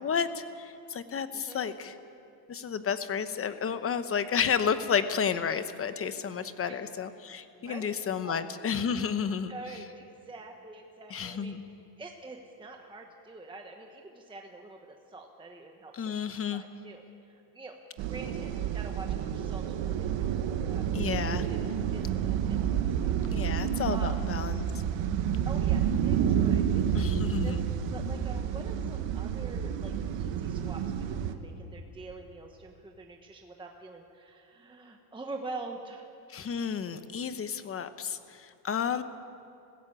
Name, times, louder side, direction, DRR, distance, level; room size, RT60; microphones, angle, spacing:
voice 1, 0.0-1.9 2.5-9.5 11.1-11.6 15.9-16.6 20.9-21.5 23.3-24.7 26.9-27.6 36.3-39.0, left 7 dB, 30° left, 11 dB, 0.9 m, -31 dB
voice 2, 1.3-1.7 6.6-6.8 7.6-8.8 9.5-11.5 12.0-17.8 18.1-21.6 21.9-23.5 23.9-24.2 25.5-27.6 27.9-36.1, right 2 dB, 10° right, 2 dB, 1.2 m, -46 dB
sound 1, 18.0-31.3, right 9 dB, 60° right, 1.4 m, -29 dB
20.5 x 15.5 x 8.8 m, 2.6 s
cardioid pair, 140°, 49 cm